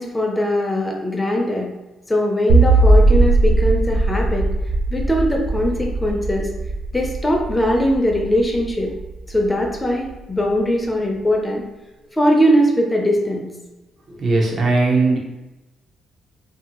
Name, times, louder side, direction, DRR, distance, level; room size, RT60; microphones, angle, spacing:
voice 1, 0.0-1.7 2.1-4.5 4.9-6.5 6.9-9.0 9.3-11.6 12.1-13.5, equal, 15° left, 0 dB, 0.5 m, -20 dB
sound 1, 2.5-9.7, right 2 dB, 80° right, 0.4 m, -18 dB
voice 2, 14.2-15.2, right 3 dB, 50° right, -1 dB, 0.7 m, -18 dB
2.6 x 2.4 x 2.9 m, 1.0 s
cardioid pair, 90°, 0 cm